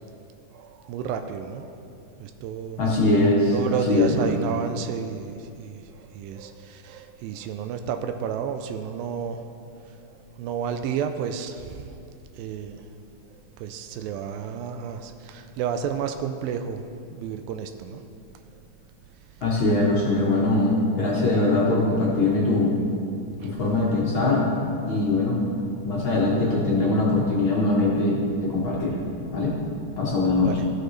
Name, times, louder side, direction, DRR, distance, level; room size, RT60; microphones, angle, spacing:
voice 1, 0.5-1.8 2.2-2.8 3.5-9.5 10.4-11.9 12.4-12.8 13.6-18.0 23.4-23.5 30.4-30.7, right 7 dB, 90° right, 7 dB, 2.3 m, -31 dB
voice 2, 2.8-4.5 19.4-22.8 23.4-24.5 24.9-25.4 25.8-29.0 29.3-29.5 30.0-30.5, left 2 dB, 60° left, -5 dB, 1.3 m, -22 dB
16.0 x 6.6 x 3.2 m, 2.5 s
omnidirectional pair, 4.0 m